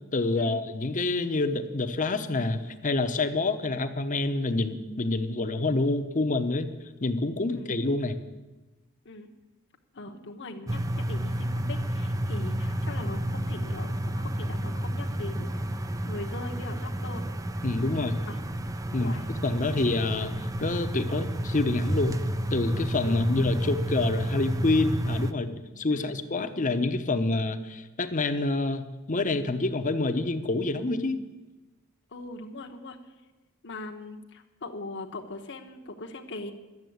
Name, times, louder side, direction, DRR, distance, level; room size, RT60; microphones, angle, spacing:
voice 1, 0.1-6.7 7.0-8.2 17.6-18.2 18.9-22.2 22.5-31.2, left 2 dB, 35° left, 9 dB, 0.8 m, -27 dB
voice 2, 9.9-15.5 16.0-17.3 18.2-18.4 19.0-19.3 23.1-23.2 25.9-26.2 32.1-33.0 33.6-36.5, left 2 dB, 55° left, 3 dB, 1.1 m, -40 dB
sound 1, 10.7-25.3, equal, 15° right, 0.5 m, -31 dB
12.0 x 7.4 x 9.3 m, 1.1 s
head